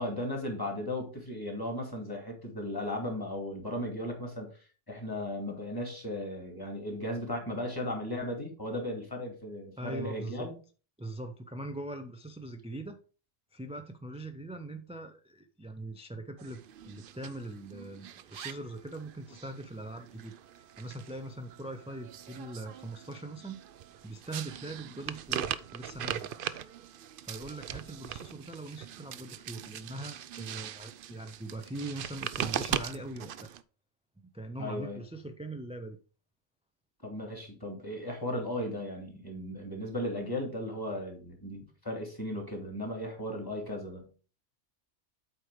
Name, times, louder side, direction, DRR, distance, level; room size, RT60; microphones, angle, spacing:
voice 1, 0.0-10.5 34.6-35.0 37.0-44.1, left 1 dB, 15° left, 2 dB, 2.4 m, -36 dB
voice 2, 9.8-10.5 11.0-13.0 13.5-23.6 24.0-26.3 27.2-33.5 34.2-36.0, right 2 dB, 10° right, 6 dB, 0.4 m, -41 dB
sound 1, 16.4-33.6, right 10 dB, 60° right, 0.6 m, -40 dB
8.2 x 4.7 x 4.8 m, 0.37 s
omnidirectional pair, 1.3 m